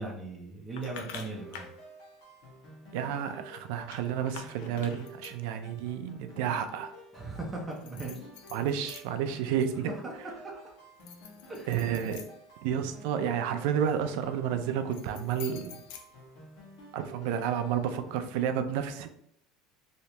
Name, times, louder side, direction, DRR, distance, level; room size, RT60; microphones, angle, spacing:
voice 1, 0.0-1.7 7.1-8.3 9.9-10.7 11.5-11.8, right 2 dB, 15° right, -1 dB, 0.6 m, -39 dB
sound 1, 0.8-1.8 3.9-5.5 7.7-9.3 9.7-10.2 10.9-13.1 14.7-16.8, left 7 dB, 85° left, 0.4 m, -48 dB
sound 2, 0.9-18.2, right 1 dB, 60° left, 1.5 m, -52 dB
voice 2, 2.9-6.9 8.5-9.9 11.7-12.2 12.6-15.7 16.9-19.1, right 8 dB, 75° right, 9 dB, 0.4 m, -31 dB
3.2 x 2.8 x 2.9 m, 0.71 s
cardioid pair, 155°, 0 cm